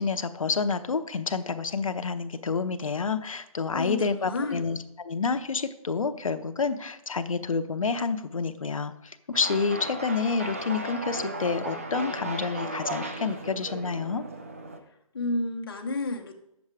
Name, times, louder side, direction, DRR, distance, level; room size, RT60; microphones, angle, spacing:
voice 1, 0.0-14.2, left 4 dB, 65° left, 9 dB, 0.8 m, -29 dB
voice 2, 3.7-4.6 15.1-16.3, left 2 dB, 40° left, 1 dB, 1.2 m, -31 dB
sound 1, 9.3-14.8, right 1 dB, 25° right, 0.5 m, -35 dB
8.7 x 7.2 x 4.8 m, 0.84 s
hypercardioid pair, 170°, 18 cm